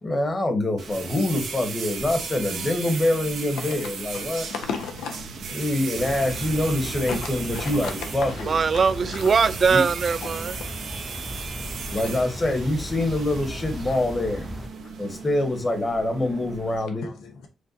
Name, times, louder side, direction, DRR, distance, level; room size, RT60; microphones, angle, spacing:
voice 1, 0.0-4.5 5.5-8.5 9.7-9.8 11.9-14.5 15.0-17.1, left 1 dB, 30° left, 1.3 m, -25 dB
sound 1, 0.8-16.8, right 5 dB, 85° right, 1.1 m, -36 dB
voice 2, 3.6-3.9 4.5-5.3 7.1-7.2 7.5-7.9 8.4-8.5 9.1-9.3 10.2-10.6 11.9-12.1 17.0-17.5, left 5 dB, 90° left, 0.9 m, -34 dB
sound 2, 4.6-9.7, right 4 dB, 65° right, 1.0 m, -44 dB
sound 3, 6.0-14.7, equal, 5° left, 0.5 m, -37 dB
voice 3, 8.5-10.6, right 5 dB, 50° right, 0.4 m, -21 dB
6.3 x 2.5 x 2.7 m
cardioid pair, 70°, 0 cm